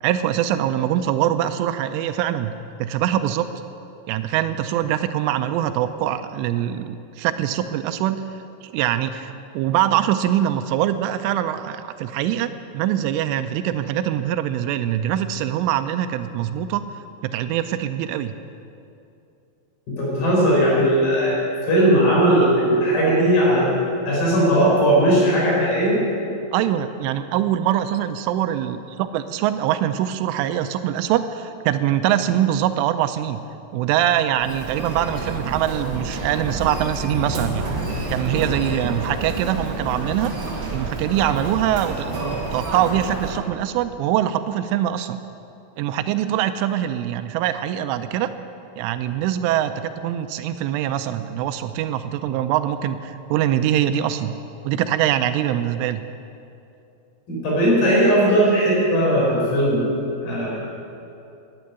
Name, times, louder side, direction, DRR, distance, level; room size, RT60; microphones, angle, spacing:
voice 1, 0.0-2.5 2.8-3.5 4.1-8.2 8.6-16.8 17.2-18.3 26.5-33.4 33.7-37.7 38.1-40.3 40.7-45.2 45.8-48.3 48.8-54.4 54.6-56.0, right 11 dB, 85° right, 10 dB, 3.0 m, -23 dB
voice 2, 19.9-21.4 21.7-23.7 24.1-26.0 57.3-59.8 60.2-60.5, right 1 dB, 50° left, -5 dB, 6.6 m, -18 dB
Human voice, 34.4-43.4, right 2 dB, 50° right, 1.5 m, -29 dB
13.5 x 10.5 x 9.4 m, 2.7 s
omnidirectional pair, 5.6 m